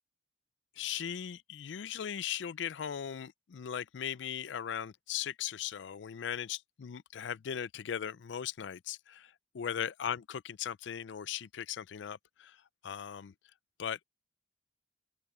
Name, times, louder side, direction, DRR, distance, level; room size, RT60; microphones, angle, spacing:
voice 1, 0.8-13.3 13.8-14.0, left 9 dB, 70° left, 0.4 m, -38 dB
open air
head